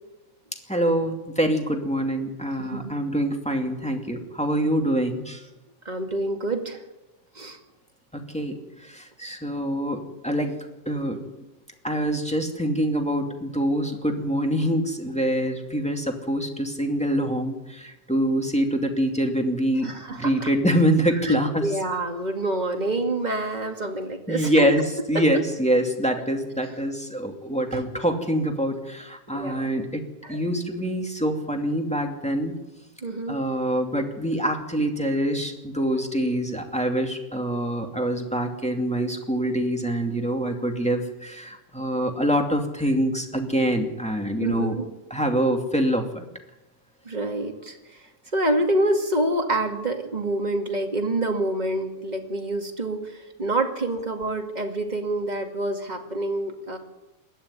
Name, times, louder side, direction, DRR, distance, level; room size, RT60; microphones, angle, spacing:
voice 1, 0.7-5.4 8.1-8.6 8.9-10.6 10.9-11.2 11.8-21.6 24.3-24.8 25.1-30.0 30.3-32.5 33.3-44.8 45.1-46.2, equal, 5° left, 3 dB, 1.9 m, -25 dB
voice 2, 2.6-2.9 5.9-6.8 7.4-7.6 19.8-20.5 21.2-24.7 25.1-25.2 27.7-27.8 29.3-29.8 30.2-30.4 33.0-33.4 44.4-44.8 47.1-47.8 48.3-53.1 53.4-56.8, right 1 dB, 15° right, 3 dB, 1.8 m, -27 dB
21.0 x 14.0 x 9.8 m, 0.99 s
omnidirectional pair, 3.4 m